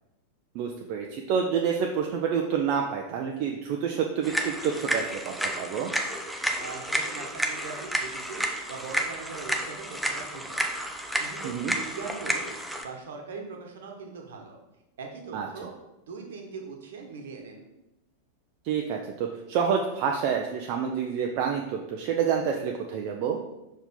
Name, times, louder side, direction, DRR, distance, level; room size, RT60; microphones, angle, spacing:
voice 1, 0.5-5.9 11.4-11.8 15.3-15.5 18.6-23.4, right 7 dB, 45° right, 1 dB, 0.5 m, -28 dB
sound 1, 4.2-12.8, right 1 dB, ahead, 0.6 m, -31 dB
voice 2, 6.6-8.4 8.7-10.6 11.1-12.5 12.8-14.6 15.0-15.7 16.1-17.6, right 5 dB, 60° right, 1 dB, 1.2 m, -40 dB
5.5 x 4.6 x 3.7 m, 0.93 s
figure-of-eight pair, 90°, 0 cm